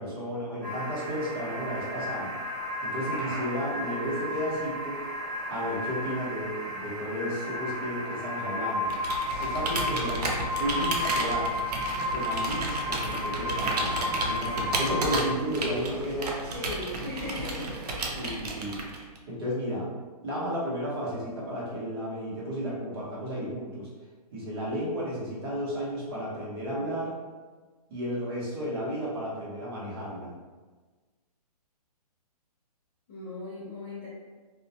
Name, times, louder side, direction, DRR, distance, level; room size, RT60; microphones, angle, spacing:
voice 1, 0.0-2.3 2.8-5.0 5.5-8.9 9.4-11.6 12.0-16.4 18.0-19.9 20.2-23.9 24.3-27.2 27.9-30.3, equal, 35° right, -6 dB, 0.8 m, -33 dB
sound 1, 0.6-15.2, left 1 dB, 5° right, 0.8 m, -33 dB
Computer keyboard, 8.9-19.2, right 2 dB, 75° right, 0.5 m, -33 dB
voice 2, 16.5-17.8 33.1-34.1, left 2 dB, 15° left, -13 dB, 0.3 m, -38 dB
2.2 x 2.1 x 2.6 m, 1.3 s
hypercardioid pair, 160°, 20 cm